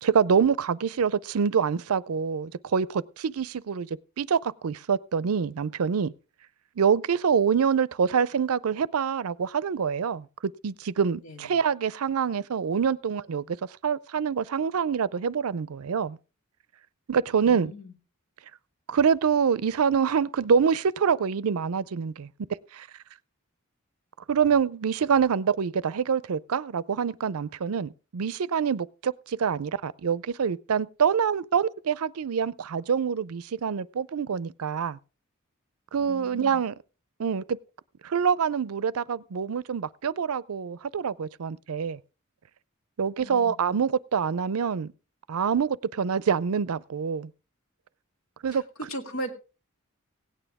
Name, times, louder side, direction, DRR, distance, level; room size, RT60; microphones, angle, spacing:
voice 1, 0.0-3.9 4.2-6.1 6.8-10.3 10.6-13.6 13.8-16.2 17.1-17.7 18.9-22.3 22.7-22.9 24.3-35.0 35.9-36.7 37.2-37.6 38.0-42.0 43.0-44.9 45.3-47.3 48.4-48.6, right 6 dB, 85° right, 0.5 m, -26 dB
voice 2, 11.2-11.6 17.3-18.0 36.0-36.7 43.2-43.6 48.5-49.3, equal, 75° left, 2.0 m, -38 dB
16.5 x 9.1 x 3.6 m
head